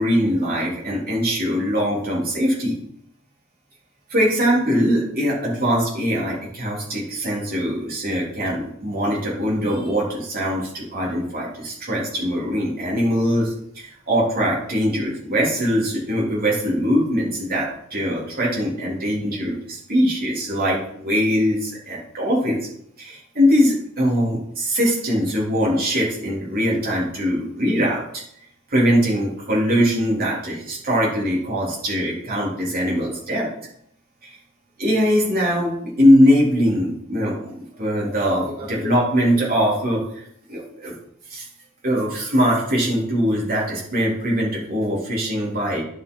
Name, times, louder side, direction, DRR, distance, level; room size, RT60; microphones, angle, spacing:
voice 1, 0.0-2.7 4.1-22.6 23.0-28.2 28.7-33.5 34.2-34.4 34.8-40.9 41.3-41.5 41.8-45.8, equal, 45° right, -4 dB, 3.8 m, -22 dB
10.5 x 5.7 x 4.8 m, 0.71 s
head